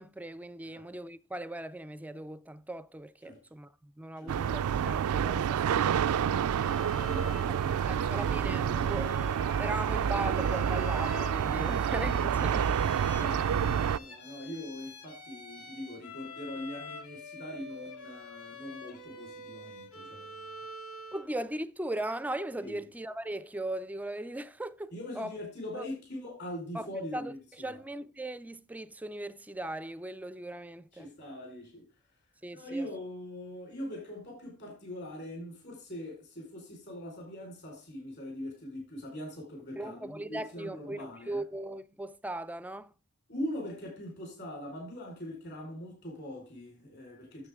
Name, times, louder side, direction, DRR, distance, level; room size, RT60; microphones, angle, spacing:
voice 1, 0.0-6.5 7.8-9.1 9.6-12.7 21.1-25.3 25.7-25.8 26.7-31.1 32.4-32.9 39.8-42.9, right 1 dB, 5° right, 0.3 m, -39 dB
sound 1, 4.3-14.0, right 8 dB, 85° right, 0.3 m, -28 dB
Bowed string instrument, 6.5-21.3, left 1 dB, 75° left, 2.3 m, -46 dB
voice 2, 6.9-9.1 11.6-11.8 12.8-20.6 22.6-22.8 24.9-27.4 27.7-27.8 30.9-31.9 32.5-41.4 43.3-47.5, left 1 dB, 50° left, 4.5 m, -42 dB
9.6 x 7.5 x 3.6 m
head